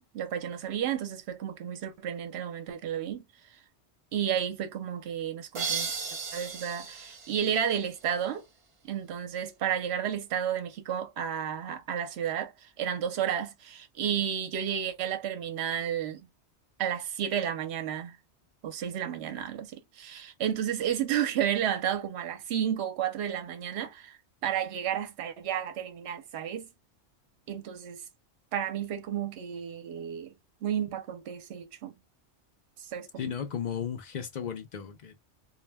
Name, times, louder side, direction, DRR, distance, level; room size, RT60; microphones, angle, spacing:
voice 1, 0.0-3.2 4.1-5.9 6.3-8.4 8.8-16.3 16.8-18.2 18.6-24.2 24.4-26.7 27.5-28.0 28.5-30.3 30.6-31.9 32.8-33.4, right 9 dB, 70° right, 0.9 m, -32 dB
sound 1, 5.5-8.3, right 5 dB, 40° right, 0.5 m, -36 dB
voice 2, 33.2-35.2, left 8 dB, 55° left, 0.5 m, -35 dB
2.3 x 2.1 x 3.2 m
omnidirectional pair, 1.2 m